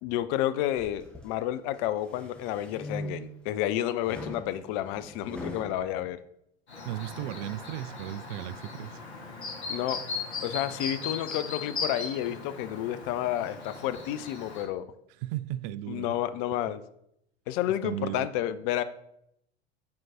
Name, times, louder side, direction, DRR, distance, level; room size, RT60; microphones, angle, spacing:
voice 1, 0.0-6.2 9.7-10.0 10.4-14.9 15.9-16.8 17.5-18.8, left 12 dB, 50° left, 0.6 m, -30 dB
sound 1, 0.8-1.3 1.8-3.5 4.0-5.8, left 1 dB, 5° left, 1.3 m, -41 dB
Chirp tweet, 6.7-14.7, left 4 dB, 80° left, 1.5 m, -38 dB
voice 2, 6.8-9.0 15.2-16.1 17.8-18.3, right 14 dB, 50° right, 0.4 m, -35 dB
10.5 x 4.5 x 2.9 m
figure-of-eight pair, 80°, 32 cm